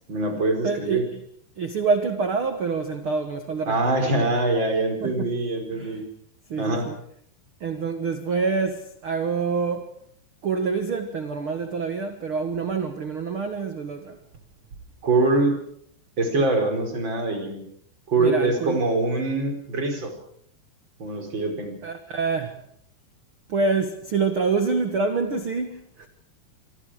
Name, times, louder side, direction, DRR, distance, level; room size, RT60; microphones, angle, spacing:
voice 1, 0.1-1.0 3.7-6.1 6.6-6.9 15.0-15.6 16.2-17.6 18.1-20.1 21.0-21.7, right 2 dB, 30° right, 5.0 m, -24 dB
voice 2, 0.6-1.2 1.6-3.8 5.0-5.3 5.7-6.0 6.5-7.0 7.6-9.9 10.4-14.2 18.2-18.8 21.8-22.6 23.5-26.1, right 4 dB, 60° right, 1.4 m, -26 dB
25.5 x 25.5 x 4.9 m
omnidirectional pair, 4.8 m